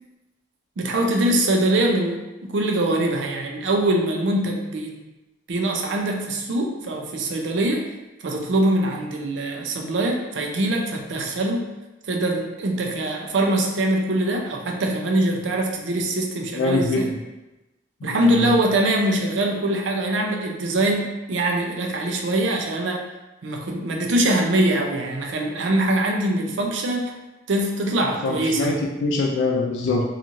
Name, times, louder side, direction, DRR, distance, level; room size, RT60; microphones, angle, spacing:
voice 1, 0.8-5.0 5.5-7.9 8.2-11.6 12.0-17.1 18.0-23.1 23.4-27.2 27.5-28.7, right 1 dB, 80° right, 2 dB, 0.4 m, -23 dB
voice 2, 16.6-17.0 18.0-18.5 28.0-28.7 29.0-30.0, left 3 dB, 90° left, -1 dB, 0.3 m, -24 dB
2.9 x 2.4 x 2.5 m, 1.0 s
head